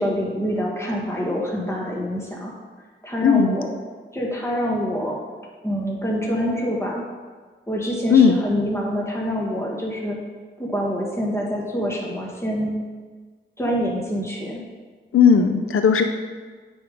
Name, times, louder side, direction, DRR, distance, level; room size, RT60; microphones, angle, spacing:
voice 1, 0.0-2.5 3.0-3.7 4.1-5.2 5.6-7.0 7.7-10.2 10.6-12.7 13.6-14.6 15.3-15.5, equal, 15° left, -2 dB, 1.6 m, -26 dB
voice 2, 3.2-3.5 8.1-8.4 15.1-16.0, left 6 dB, 85° left, 6 dB, 0.5 m, -15 dB
9.1 x 3.6 x 5.2 m, 1.5 s
wide cardioid pair, 65°, 21 cm